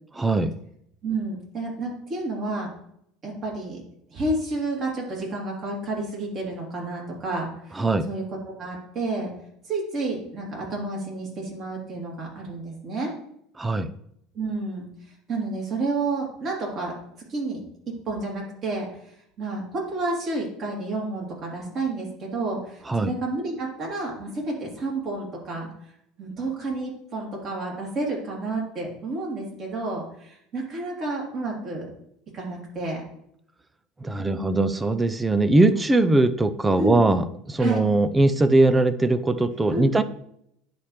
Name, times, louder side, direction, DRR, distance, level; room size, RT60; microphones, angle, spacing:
voice 1, 0.2-0.5 7.8-8.1 13.6-13.9 22.9-23.1 34.0-40.0, right 2 dB, 15° right, 13 dB, 0.5 m, -21 dB
voice 2, 1.0-2.7 3.2-3.8 4.1-9.3 9.6-13.1 14.3-14.9 15.3-16.9 17.3-17.6 17.9-18.9 19.4-25.7 26.2-31.9 32.3-33.0 34.2-34.7 36.8-37.1 37.6-37.8 39.7-39.9, right 2 dB, 45° right, -2 dB, 3.1 m, -30 dB
10.0 x 4.2 x 3.3 m, 0.72 s
supercardioid pair, 105°, 0 cm